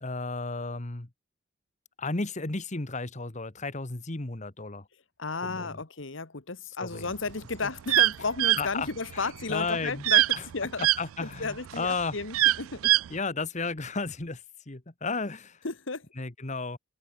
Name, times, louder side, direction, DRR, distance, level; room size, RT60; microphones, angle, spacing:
voice 1, 0.0-1.1 2.0-4.9 5.4-5.8 6.8-7.1 8.6-8.9 9.1-10.0 10.3-10.4 11.0-12.2 13.1-15.6 16.2-16.8, left 3 dB, 35° left, 1.4 m, -33 dB
voice 2, 5.2-10.9 11.2-12.9 15.6-16.1, left 4 dB, 65° left, 1.5 m, -33 dB
sound 1, 7.1-11.0 11.5-13.1, right 16 dB, 85° right, 0.3 m, -23 dB
head